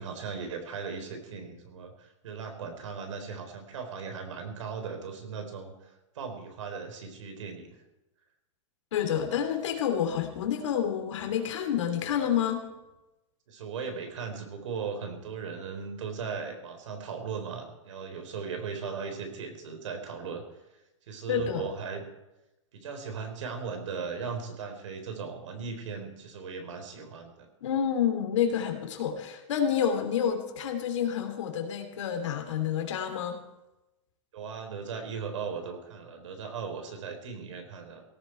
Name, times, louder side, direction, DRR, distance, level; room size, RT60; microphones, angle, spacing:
voice 1, 0.0-7.7 13.5-20.4 21.1-22.0 22.7-27.5 34.3-38.0, right 5 dB, 70° right, 6 dB, 3.9 m, -38 dB
voice 2, 8.9-12.7 21.3-21.7 27.6-33.4, left 8 dB, 70° left, 5 dB, 3.0 m, -29 dB
17.5 x 14.5 x 4.5 m, 0.99 s
supercardioid pair, 170°, 16 cm